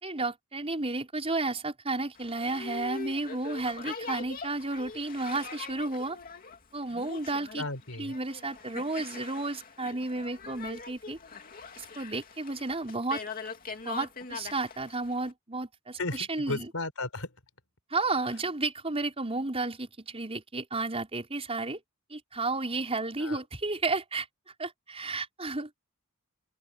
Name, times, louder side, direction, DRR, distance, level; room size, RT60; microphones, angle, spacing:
voice 1, 0.0-6.2 6.7-7.7 8.0-11.2 11.8-13.2 13.8-16.7 17.9-21.8 22.1-24.3 24.6-25.7, right 3 dB, 30° right, 5.2 m, -32 dB
Boat Water vehicle, 2.2-15.3, left 5 dB, 45° left, 2.5 m, -43 dB
voice 2, 7.6-8.1 16.0-17.3 23.2-23.4, left 2 dB, 80° left, 4.5 m, -34 dB
open air
head